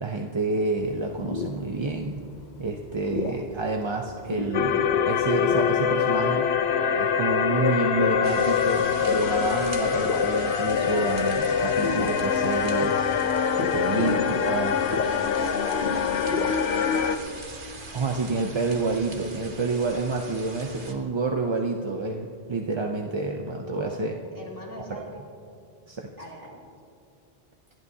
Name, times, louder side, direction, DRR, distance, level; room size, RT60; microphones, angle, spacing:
voice 1, 0.0-2.2 2.6-6.5 7.0-14.8 17.9-24.1 25.9-26.1, right 3 dB, 35° right, 2 dB, 0.6 m, -29 dB
sound 1, 0.8-16.9, left 3 dB, 45° left, 0.9 m, -36 dB
sound 2, 4.5-17.2, left 7 dB, 80° left, 0.9 m, -24 dB
sound 3, 8.2-21.0, right 3 dB, 55° right, 1.4 m, -41 dB
voice 2, 13.9-14.3 14.8-16.8 23.6-24.0 24.3-25.2 26.2-26.6, right 1 dB, 20° right, -5 dB, 3.0 m, -40 dB
26.5 x 10.5 x 2.8 m, 2.4 s
omnidirectional pair, 1.1 m